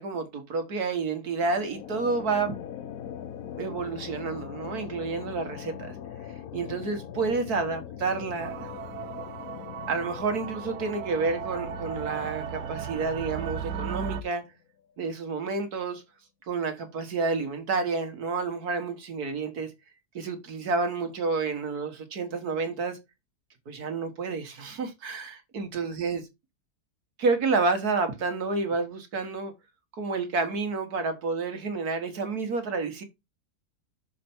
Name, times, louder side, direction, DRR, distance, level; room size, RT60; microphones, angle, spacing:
voice 1, 0.0-2.6 3.6-6.0 6.5-8.5 9.9-14.4 15.0-16.0 16.5-19.7 20.1-23.0 23.7-26.2 27.2-29.5 30.0-33.0, right 4 dB, 70° right, 1.9 m, -29 dB
sound 1, 1.4-14.5, left 9 dB, 65° left, 1.2 m, -41 dB
sound 2, 8.4-14.2, right 8 dB, 90° right, 1.2 m, -36 dB
6.6 x 4.7 x 4.3 m
omnidirectional pair, 1.7 m